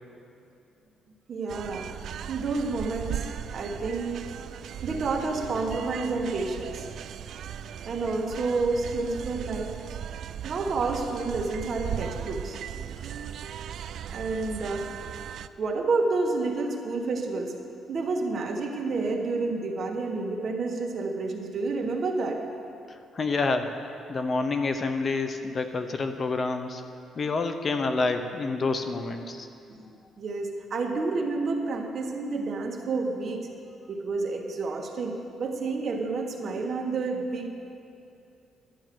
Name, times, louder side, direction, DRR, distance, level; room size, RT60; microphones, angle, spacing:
voice 1, 1.3-2.0 2.3-3.2 3.5-4.2 4.8-6.9 7.8-9.7 10.4-12.6 14.1-14.9 15.6-17.5 17.9-22.4 29.7-29.8 30.2-33.5 33.9-37.5, right 3 dB, 45° right, 2 dB, 1.4 m, -29 dB
sound 1, 1.5-15.5, right 9 dB, 65° right, 0.3 m, -37 dB
voice 2, 22.9-26.8 27.2-29.5, left 3 dB, 35° left, 8 dB, 0.7 m, -28 dB
11.5 x 8.9 x 6.1 m, 2.6 s
cardioid pair, 105°, 0 cm